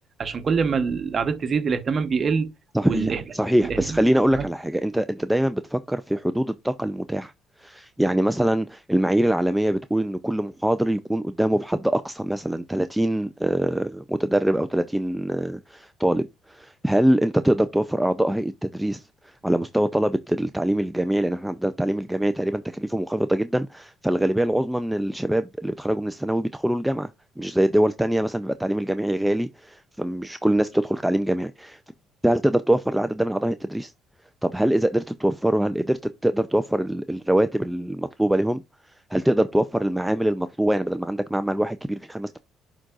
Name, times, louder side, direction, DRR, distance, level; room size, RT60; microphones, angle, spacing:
voice 1, 0.2-2.5 2.8-3.2 3.6-4.0 4.3-4.5, right 5 dB, 40° right, 1.0 m, -24 dB
voice 2, 2.7-7.3 7.6-27.1 27.4-31.8 32.2-33.9 34.4-38.6 39.1-42.4, right 1 dB, 5° right, 0.4 m, -23 dB
11.0 x 3.9 x 2.4 m
cardioid pair, 95°, 0 cm